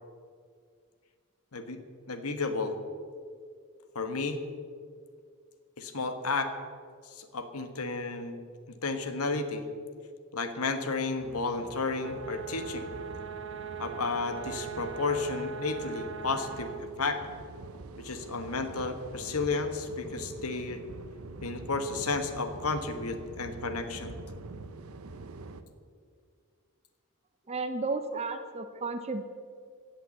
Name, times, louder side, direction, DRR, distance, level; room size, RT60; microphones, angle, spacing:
voice 1, 2.1-2.8 3.9-4.4 5.8-6.5 7.1-8.4 8.8-9.6 10.3-12.9 13.8-17.2 18.0-20.8 21.4-24.2, left 3 dB, 80° left, 8 dB, 1.4 m, -32 dB
sound 1, 11.2-25.6, right 3 dB, 75° right, 0.8 m, -45 dB
sound 2, 12.0-16.8, right 7 dB, 55° right, 1.0 m, -40 dB
voice 2, 27.5-29.2, right 3 dB, 30° right, 7 dB, 0.6 m, -33 dB
16.0 x 8.1 x 7.9 m, 2.1 s
head